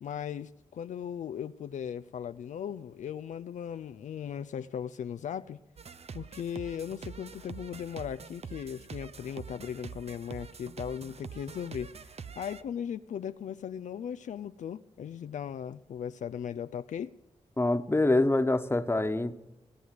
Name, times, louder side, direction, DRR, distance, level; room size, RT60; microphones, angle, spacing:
voice 1, 0.0-5.6 6.1-17.1, left 8 dB, 80° left, 11 dB, 0.4 m, -38 dB
sound 1, 5.8-12.6, right 6 dB, 55° right, 0.7 m, -45 dB
voice 2, 17.6-19.3, left 2 dB, 20° left, 9 dB, 1.2 m, -25 dB
17.5 x 7.9 x 9.4 m, 0.97 s
cardioid pair, 45°, 12 cm